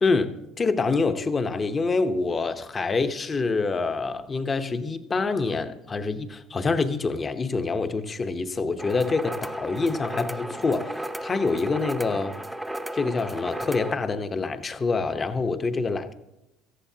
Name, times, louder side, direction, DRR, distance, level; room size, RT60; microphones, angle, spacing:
voice 1, 0.0-12.4 12.9-16.1, left 4 dB, 30° left, 0.9 m, -26 dB
sound 1, 8.8-13.9, right 1 dB, 5° right, 0.7 m, -34 dB
17.5 x 14.0 x 2.8 m
supercardioid pair, 90°, 0 cm